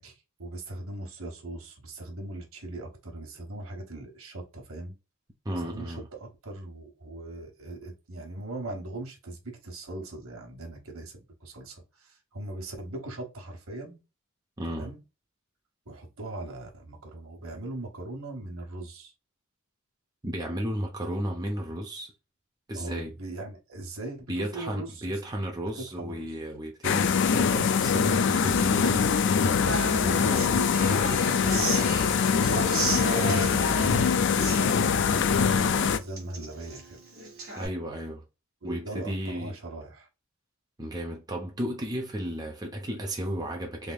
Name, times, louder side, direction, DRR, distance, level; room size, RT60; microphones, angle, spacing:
voice 1, 0.0-5.0 5.6-14.0 14.7-15.0 15.9-19.1 22.7-25.1 25.7-26.3 28.3-34.7 35.3-37.0 38.6-40.1, right 2 dB, 70° right, 1.3 m, -40 dB
voice 2, 5.4-6.1 14.6-14.9 20.2-22.1 22.7-23.1 24.3-29.0 30.2-30.6 35.1-35.3 37.6-38.2 38.6-39.6 40.8-43.9, right 1 dB, 20° right, 0.7 m, -34 dB
sound 1, 26.8-36.0, left 6 dB, 55° left, 0.4 m, -23 dB
Human voice / Acoustic guitar, 29.7-37.7, right 2 dB, 45° right, 1.5 m, -34 dB
3.5 x 3.5 x 2.3 m
head